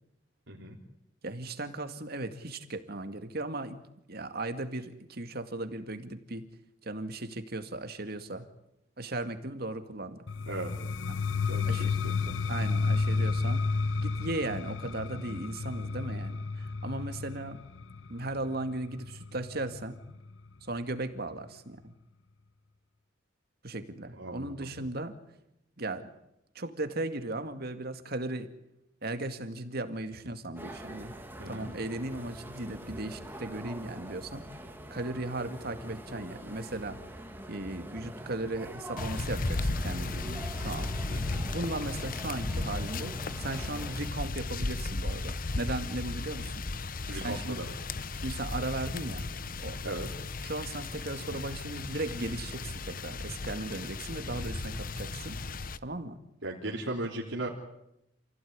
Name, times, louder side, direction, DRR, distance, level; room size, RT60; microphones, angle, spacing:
voice 1, 0.5-0.8 10.4-10.7 11.4-12.1 24.2-24.7 31.4-31.7 41.1-41.4 47.1-47.8 49.8-50.1 56.4-57.5, right 2 dB, 80° right, -2 dB, 3.5 m, -37 dB
voice 2, 1.2-3.8 4.1-6.5 6.8-8.5 9.0-10.2 11.1-11.2 11.6-11.9 12.5-13.6 14.0-17.6 18.1-20.0 20.6-21.9 23.6-25.2 25.8-26.1 26.5-28.5 29.0-31.1 31.5-34.4 34.9-37.2 37.5-40.9 41.5-46.7 47.1-47.6 48.2-49.3 49.6-49.8 50.4-55.4 55.8-56.2, right 2 dB, 55° right, 8 dB, 2.2 m, -37 dB
sound 1, 10.3-20.1, left 4 dB, 80° left, 0.8 m, -31 dB
sound 2, 30.5-44.1, right 1 dB, 10° right, 2.7 m, -45 dB
sound 3, 39.0-55.8, left 3 dB, 50° left, 0.9 m, -35 dB
28.5 x 16.5 x 9.6 m, 0.85 s
head